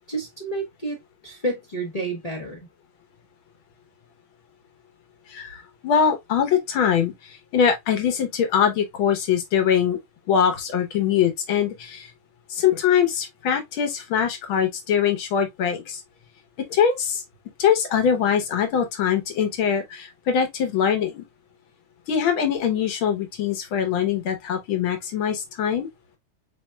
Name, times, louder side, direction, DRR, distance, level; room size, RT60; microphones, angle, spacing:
voice 1, 0.1-1.0 1.2-2.7, right 2 dB, 40° left, 0.5 m, -30 dB
voice 2, 5.3-7.1 7.5-10.0 10.3-12.1 12.5-16.0 16.7-17.2 17.6-21.2 22.1-25.9, left 8 dB, 80° left, 1.9 m, -22 dB
4.3 x 4.0 x 2.2 m
omnidirectional pair, 2.2 m